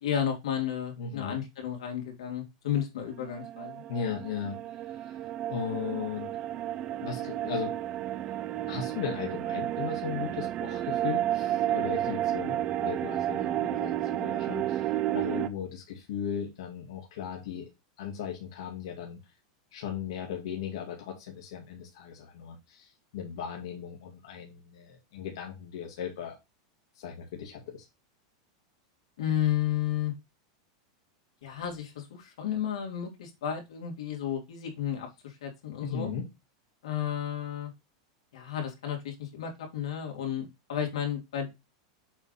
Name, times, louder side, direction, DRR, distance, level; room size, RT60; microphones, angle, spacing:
voice 1, 0.0-3.8 29.2-30.1 31.4-36.1 36.8-37.7 38.3-41.5, left 10 dB, 85° left, 2 dB, 3.0 m, -32 dB
voice 2, 1.0-1.4 3.9-4.6 5.0-5.2 5.5-6.3 7.0-7.8 8.7-17.7 18.0-19.2 19.7-26.4 26.9-27.9 35.8-36.3, left 8 dB, 60° left, 1 dB, 2.0 m, -37 dB
sound 1, 3.2-15.5, right 12 dB, 25° right, 0.5 m, -31 dB
7.2 x 3.8 x 5.6 m, 0.23 s
supercardioid pair, 180°, 3 cm